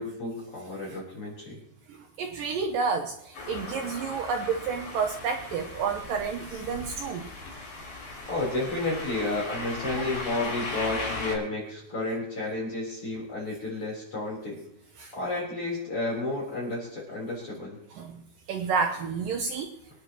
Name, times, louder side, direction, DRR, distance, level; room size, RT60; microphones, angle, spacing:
voice 1, 0.0-1.6 8.3-14.6 15.1-17.8, left 2 dB, 30° left, -5 dB, 4.4 m, -31 dB
voice 2, 1.9-7.3 15.0-15.1 17.9-18.2 18.5-19.7, right 5 dB, 80° right, 3 dB, 2.0 m, -30 dB
sound 1, 3.3-11.4, left 2 dB, 55° left, 6.3 m, -37 dB
25.5 x 9.3 x 3.0 m, 0.75 s
omnidirectional pair, 5.1 m